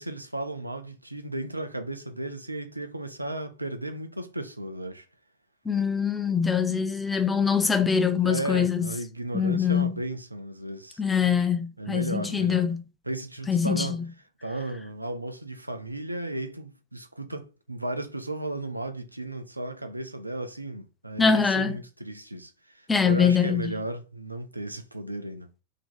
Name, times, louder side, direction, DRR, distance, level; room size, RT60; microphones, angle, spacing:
voice 1, 0.0-5.1 8.2-11.0 11.8-12.7 13.1-14.0 14.4-25.5, right 2 dB, 85° right, 0.6 m, -34 dB
voice 2, 5.7-8.9 9.3-10.0 11.0-12.8 13.5-13.9 21.2-21.8 22.9-23.7, left 6 dB, 10° left, 0.6 m, -23 dB
3.8 x 3.0 x 3.7 m
figure-of-eight pair, 90°, 0 cm